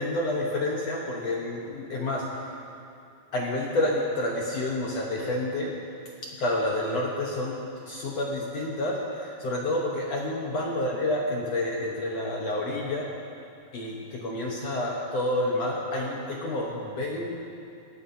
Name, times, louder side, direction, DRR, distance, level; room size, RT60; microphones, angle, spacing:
voice 1, 0.0-2.5 3.3-5.7 6.4-7.6 7.9-13.1 13.7-17.4, left 1 dB, 60° left, -3 dB, 2.0 m, -29 dB
22.0 x 17.0 x 2.9 m, 2.6 s
omnidirectional pair, 3.9 m